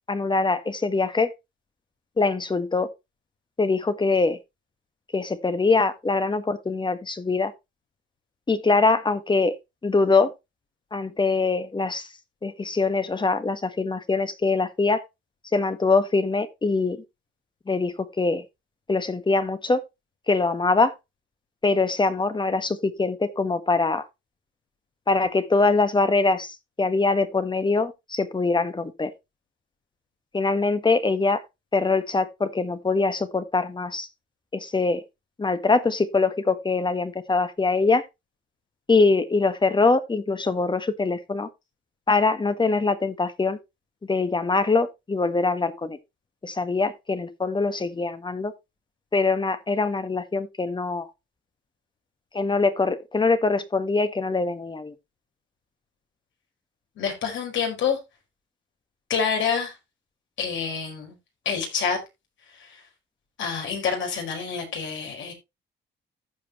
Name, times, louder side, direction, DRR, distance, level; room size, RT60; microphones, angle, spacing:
voice 1, 0.1-1.3 2.2-2.9 3.6-4.4 5.1-7.5 8.5-9.5 9.8-10.3 10.9-12.1 12.4-15.0 15.5-17.0 17.7-18.4 18.9-19.8 20.3-20.9 21.6-24.0 25.1-29.1 30.3-31.4 31.7-34.1 34.5-35.0 35.4-38.0 38.9-41.5 42.1-43.6 44.1-46.0 46.4-48.5 49.1-51.1 52.3-54.9, left 3 dB, 25° left, 1.5 m, -23 dB
voice 2, 57.0-58.0 59.1-59.7 60.4-61.2 61.4-62.0 62.5-62.8 63.4-65.3, left 6 dB, 75° left, 4.8 m, -27 dB
14.5 x 5.2 x 3.0 m
cardioid pair, 90°, 20 cm